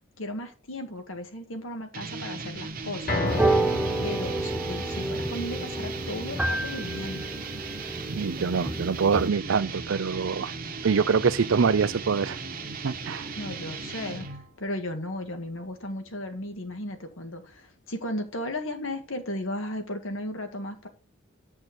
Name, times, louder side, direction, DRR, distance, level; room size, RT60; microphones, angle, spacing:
voice 1, 0.2-3.4 4.0-7.3 13.4-20.9, left 1 dB, 90° left, 1.8 m, -35 dB
sound 1, 1.9-14.5, right 4 dB, 45° right, 1.2 m, -37 dB
sound 2, 3.1-15.3 15.7-15.8 16.3-16.4, left 1 dB, 50° left, 1.7 m, -37 dB
sound 3, 3.3-9.3, right 2 dB, 5° right, 0.6 m, -30 dB
voice 2, 8.1-10.5 10.8-12.4 12.8-13.3, right 5 dB, 70° right, 0.5 m, -25 dB
8.1 x 6.1 x 4.2 m
head